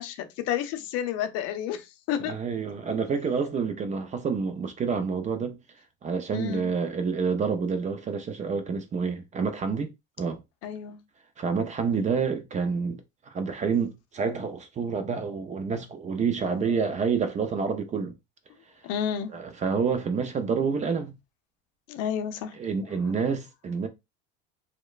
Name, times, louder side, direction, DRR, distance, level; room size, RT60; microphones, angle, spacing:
voice 1, 0.0-2.4 6.3-6.7 10.6-11.0 11.9-12.1 18.8-19.3 21.9-22.5, left 9 dB, 60° left, 0.6 m, -31 dB
voice 2, 2.2-5.6 6.0-9.9 10.2-10.4 11.4-13.0 13.3-18.1 19.3-21.1 22.6-23.9, right 5 dB, 25° right, 0.4 m, -28 dB
2.9 x 2.1 x 2.3 m
supercardioid pair, 110°, 29 cm